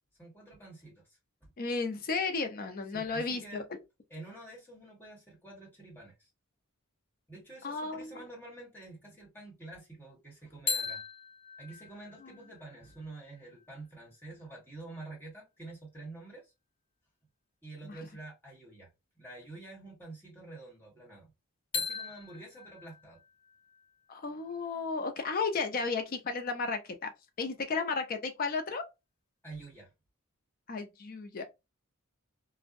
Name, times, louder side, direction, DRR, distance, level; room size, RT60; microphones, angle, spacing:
voice 1, 0.2-1.5 2.9-3.6 4.1-6.3 7.3-11.0 11.6-16.5 17.6-18.9 19.1-21.3 21.7-23.2 29.4-29.9, right 2 dB, 10° left, 1.2 m, -48 dB
voice 2, 1.6-3.8 7.6-8.2 12.2-12.3 17.8-18.0 24.1-27.1 27.4-28.8 30.7-31.4, left 4 dB, 40° left, 0.4 m, -34 dB
sound 1, 10.7-14.5 21.7-25.6, left 5 dB, 70° left, 1.0 m, -41 dB
2.5 x 2.0 x 2.5 m
head